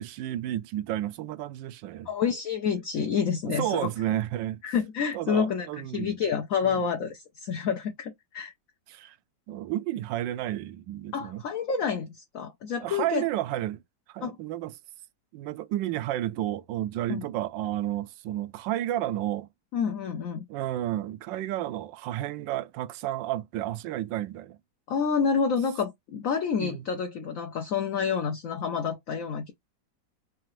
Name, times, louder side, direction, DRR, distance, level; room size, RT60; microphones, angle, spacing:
voice 1, 0.0-2.1 3.5-4.7 5.1-6.2 6.6-6.8 8.9-9.2 9.5-11.4 12.8-13.8 14.1-14.8 15.3-19.5 20.5-24.6 26.6-26.9, right 13 dB, 80° right, 1.3 m, -31 dB
voice 2, 2.1-3.9 4.6-5.7 5.9-8.5 11.1-13.2 14.2-14.4 17.1-17.2 19.7-20.4 24.9-29.5, left 6 dB, 65° left, 0.8 m, -28 dB
4.7 x 2.4 x 3.0 m
omnidirectional pair, 2.0 m